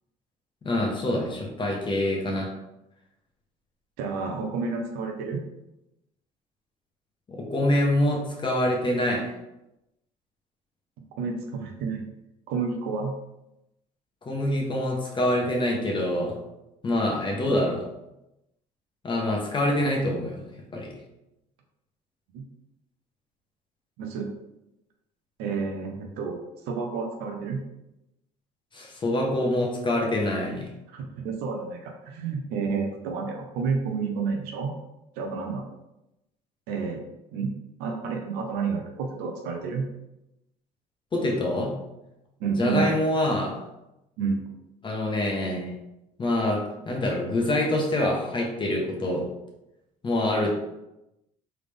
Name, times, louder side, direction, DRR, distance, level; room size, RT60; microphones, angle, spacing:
voice 1, 0.6-2.5 7.3-9.3 14.2-16.4 16.8-17.8 19.0-20.4 20.7-20.9 28.7-30.7 41.1-41.7 42.6-43.5 44.8-45.7 46.2-49.2 50.0-50.5, left 1 dB, 30° left, 0 dB, 1.1 m, -25 dB
voice 2, 4.0-5.4 11.2-12.0 12.5-13.1 22.3-22.4 24.0-24.3 25.4-27.6 30.9-34.7 35.2-35.7 36.7-37.0 37.3-37.5 37.8-39.9 42.4-42.9 44.2-44.4, right 5 dB, 85° right, 2 dB, 0.7 m, -30 dB
3.9 x 3.5 x 3.4 m, 0.91 s
supercardioid pair, 90°, 16 cm